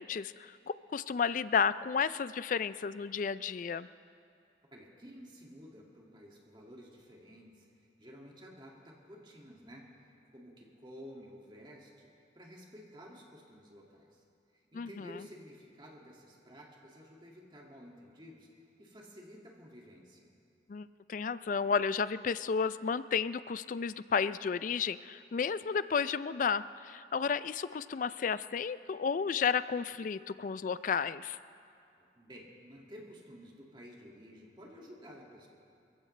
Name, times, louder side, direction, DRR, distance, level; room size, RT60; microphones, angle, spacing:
voice 1, 0.0-3.9 14.7-15.2 20.7-31.4, left 6 dB, 45° left, 15 dB, 0.3 m, -32 dB
voice 2, 4.7-9.8 10.3-12.1 12.3-14.2 14.5-20.3 32.0-35.5, equal, 25° right, -2 dB, 2.1 m, -52 dB
29.0 x 15.5 x 3.2 m, 2.4 s
head